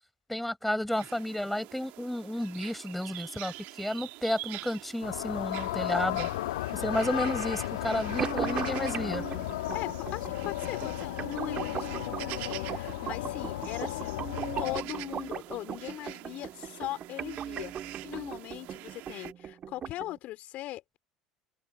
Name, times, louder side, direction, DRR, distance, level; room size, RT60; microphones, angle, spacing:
voice 1, 0.3-6.3 6.7-9.2, left 1 dB, 5° left, 6.3 m, -32 dB
sound 1, 0.9-19.3, right 22 dB, 60° right, 2.8 m, -46 dB
sound 2, 5.0-14.8, left 17 dB, 70° left, 3.0 m, -34 dB
sound 3, 8.2-20.2, right 9 dB, 40° right, 2.2 m, -39 dB
voice 2, 9.7-14.2 14.6-21.0, left 16 dB, 50° left, 3.7 m, -40 dB
open air
figure-of-eight pair, 65°, 3 cm